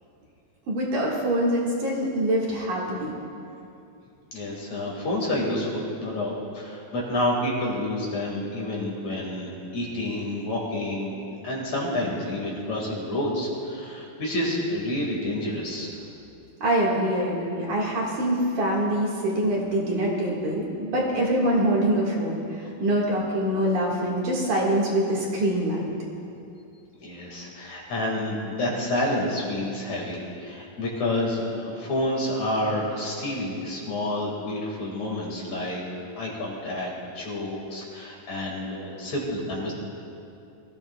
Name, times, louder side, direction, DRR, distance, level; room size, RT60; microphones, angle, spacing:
voice 1, 0.7-3.1 16.6-22.4 22.8-25.8, right 1 dB, 60° right, -4 dB, 3.2 m, -24 dB
voice 2, 4.3-16.0 27.0-35.8 36.2-39.7, left 1 dB, 50° left, -3 dB, 3.0 m, -29 dB
23.0 x 15.0 x 2.3 m, 2.6 s
omnidirectional pair, 4.3 m